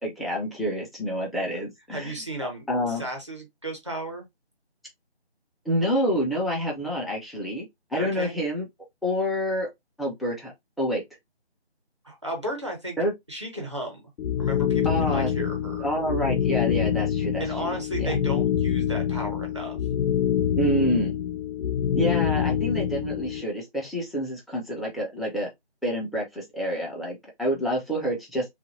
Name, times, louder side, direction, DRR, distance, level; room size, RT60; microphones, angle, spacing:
voice 1, 0.0-2.1 2.4-3.0 5.7-7.7 7.9-8.7 9.0-9.7 10.0-10.5 10.8-11.0 13.0-13.1 14.8-15.3 15.8-18.1 20.6-21.2 22.0-25.5 25.8-28.5, equal, ahead, 0.5 m, -28 dB
voice 2, 1.9-4.3 8.0-8.4 12.0-13.0 13.3-14.1 14.4-15.9 17.4-19.8, right 1 dB, 25° right, 1.0 m, -34 dB
sound 1, 14.2-23.4, left 9 dB, 80° left, 0.5 m, -26 dB
3.2 x 2.4 x 2.6 m
figure-of-eight pair, 175°, 33 cm